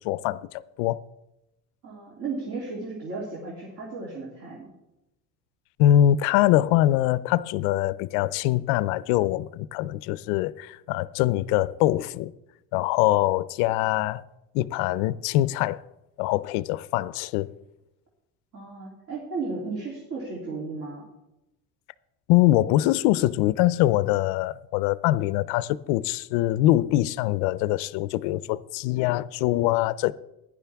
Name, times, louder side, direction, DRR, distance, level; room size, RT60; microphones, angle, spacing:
voice 1, 0.0-1.0 5.8-12.3 12.7-14.2 14.5-15.8 16.2-17.5 22.3-30.1, left 14 dB, 85° left, 0.6 m, -23 dB
voice 2, 1.8-4.7 18.5-21.0, right 3 dB, 50° right, 3.1 m, -34 dB
16.0 x 10.5 x 3.5 m
cardioid pair, 175°, 37 cm